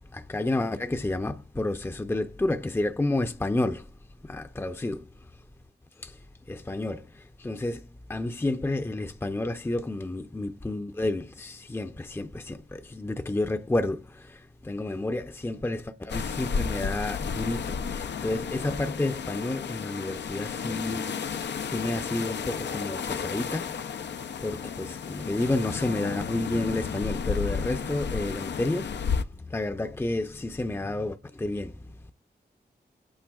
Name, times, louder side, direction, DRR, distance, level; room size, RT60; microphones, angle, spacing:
voice 1, 0.1-3.9 4.2-5.1 6.0-6.2 6.5-24.1 24.4-31.9, left 2 dB, 15° left, 0.5 m, -31 dB
sound 1, 16.1-29.2, left 6 dB, 85° left, 0.5 m, -32 dB
22.5 x 8.7 x 2.3 m
cardioid pair, 60°, 18 cm